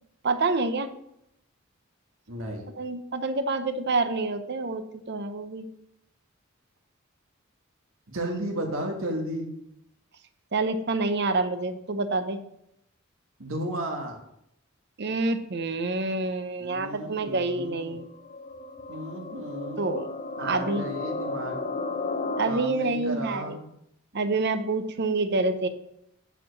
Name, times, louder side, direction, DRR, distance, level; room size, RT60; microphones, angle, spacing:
voice 1, 0.2-0.9 2.8-5.7 10.5-12.4 15.0-18.0 19.8-20.1 20.4-20.9 22.4-23.6 24.1-25.7, right 3 dB, 55° right, 10 dB, 0.8 m, -27 dB
voice 2, 2.3-2.7 8.1-9.5 13.4-14.2 16.6-18.0 18.9-20.0 20.4-21.6 22.4-23.7, right 1 dB, 80° right, 1 dB, 1.5 m, -34 dB
sound 1, 17.4-22.5, left 3 dB, 40° left, 0.8 m, -34 dB
8.9 x 4.8 x 6.3 m, 0.78 s
head